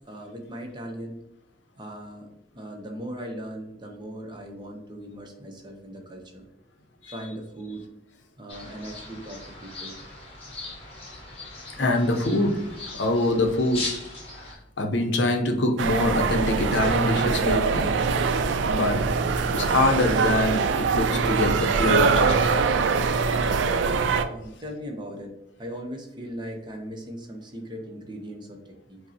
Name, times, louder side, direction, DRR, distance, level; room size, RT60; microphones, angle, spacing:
voice 1, 0.1-1.2 1.8-6.4 7.1-7.9 8.4-10.0 24.2-29.0, equal, 25° right, 2 dB, 0.6 m, -38 dB
sound 1, 8.5-14.5, left 3 dB, 30° left, 0.9 m, -39 dB
voice 2, 11.8-13.9 14.4-14.5 14.8-18.0 18.5-19.0 19.5-22.7, left 2 dB, 80° left, 4 dB, 0.6 m, -24 dB
sound 2, 15.8-24.2, right 5 dB, 80° right, 0.3 m, -23 dB
5.1 x 2.0 x 2.7 m, 0.84 s
head